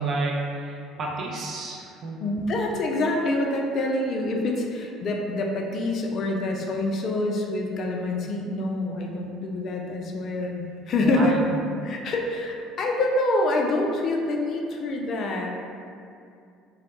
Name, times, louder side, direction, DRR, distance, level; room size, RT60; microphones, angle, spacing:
voice 1, 0.0-2.2 11.0-11.4, right 2 dB, 50° right, -2 dB, 0.5 m, -30 dB
voice 2, 2.2-11.4 11.8-15.5, left 2 dB, 50° left, 1 dB, 0.3 m, -26 dB
2.2 x 2.0 x 2.9 m, 2.5 s
hypercardioid pair, 65°, 0 cm